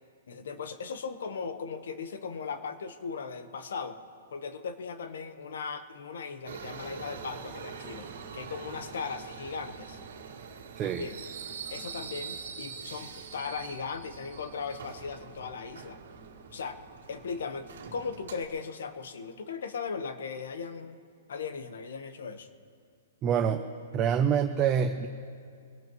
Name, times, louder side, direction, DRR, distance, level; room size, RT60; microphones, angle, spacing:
voice 1, 0.3-4.0 4.3-10.0 10.8-11.2 11.7-16.0 16.5-16.8 17.1-21.0 21.3-22.5, left 5 dB, 75° left, 9 dB, 1.2 m, -38 dB
Subway metro underground, 6.4-18.4, right 6 dB, 80° right, 1.9 m, -44 dB
voice 2, 10.8-11.1 23.2-23.6 23.9-25.1, right 8 dB, 20° right, 6 dB, 0.6 m, -26 dB
24.0 x 17.5 x 3.1 m, 2.2 s
hypercardioid pair, 160°, 0 cm